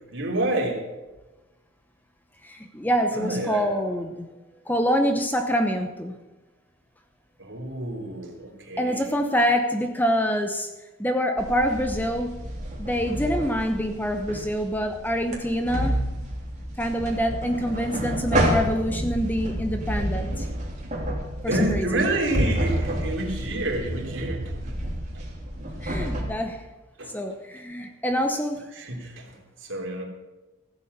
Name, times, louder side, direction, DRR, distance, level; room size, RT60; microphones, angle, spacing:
voice 1, 0.1-0.8 3.1-3.7 7.4-9.1 21.5-24.5 27.0-27.1 28.7-30.0, right 1 dB, 60° right, 0 dB, 3.3 m, -28 dB
voice 2, 2.4-4.3 4.7-6.2 8.8-10.7 11.0-12.3 12.8-16.1 16.8-20.5 21.4-21.8 25.8-26.7 27.1-28.7, equal, 10° left, 5 dB, 0.8 m, -26 dB
sound 1, 11.4-26.2, right 1 dB, 35° right, 3.1 m, -30 dB
15.0 x 8.3 x 6.6 m, 1.1 s
head